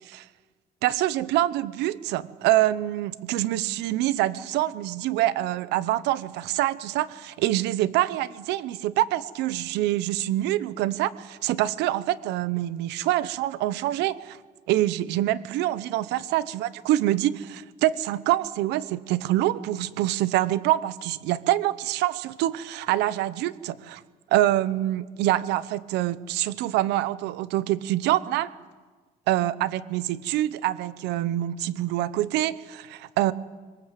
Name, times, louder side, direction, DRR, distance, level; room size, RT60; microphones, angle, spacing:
voice 1, 0.8-14.4 14.7-24.0 24.3-28.5 29.3-33.3, right 14 dB, 90° right, 17 dB, 0.9 m, -25 dB
22.0 x 19.0 x 8.3 m, 1.4 s
cardioid pair, 110°, 17 cm